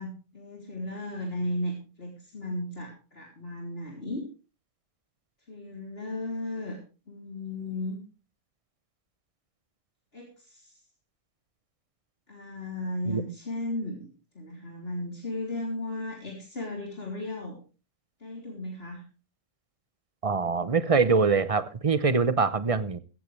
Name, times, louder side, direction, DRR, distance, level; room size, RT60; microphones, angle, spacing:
voice 1, 0.0-4.3 5.5-6.8 7.1-8.0 10.1-10.7 12.3-14.1 14.4-17.6 18.2-19.0, left 1 dB, 45° left, -2 dB, 3.7 m, -35 dB
voice 2, 20.2-23.0, right 4 dB, 30° right, 14 dB, 0.8 m, -24 dB
15.5 x 15.0 x 3.3 m, 0.34 s
omnidirectional pair, 1.4 m